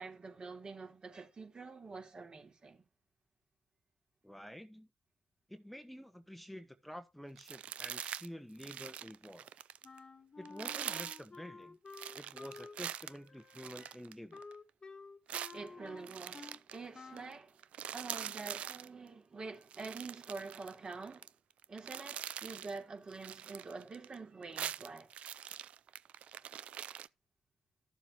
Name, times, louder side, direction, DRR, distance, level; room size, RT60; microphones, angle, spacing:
voice 1, 0.0-2.8 15.5-17.6 17.9-21.3 21.7-25.1 26.4-26.5, right 4 dB, 45° right, 3.4 m, -46 dB
voice 2, 4.2-4.9 5.5-9.5 10.4-11.8 12.1-14.4, equal, 5° left, 1.1 m, -49 dB
sound 1, 7.4-8.3 8.5-10.0 10.4-11.3 11.9-14.5 15.3-16.8 17.2-17.3 17.6-18.9 19.6-21.3 21.6-22.8 23.1-24.2 24.4-27.1, right 10 dB, 75° right, 0.4 m, -43 dB
Wind instrument woodwind instrument, 9.8-16.6 16.9-17.4, left 4 dB, 40° left, 1.5 m, -52 dB
13.5 x 7.3 x 2.8 m
supercardioid pair, 55°, 2 cm